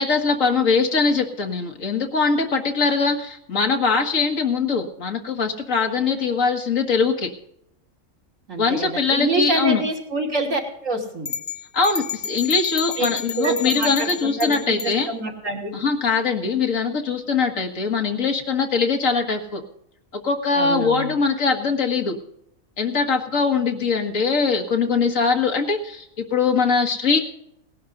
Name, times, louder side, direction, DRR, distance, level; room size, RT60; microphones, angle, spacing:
voice 1, 0.0-7.3 8.6-9.8 11.7-15.1 15.7-19.6 20.1-22.2 22.8-27.2, left 4 dB, 75° left, 3 dB, 2.0 m, -22 dB
voice 2, 8.5-11.3 13.0-13.1 13.3-13.9 14.2-15.8 20.5-21.1, right 2 dB, 70° right, -1 dB, 3.4 m, -26 dB
sound 1, 11.3-15.0, left 5 dB, 45° left, 0.7 m, -31 dB
19.0 x 11.0 x 3.9 m, 0.77 s
omnidirectional pair, 1.4 m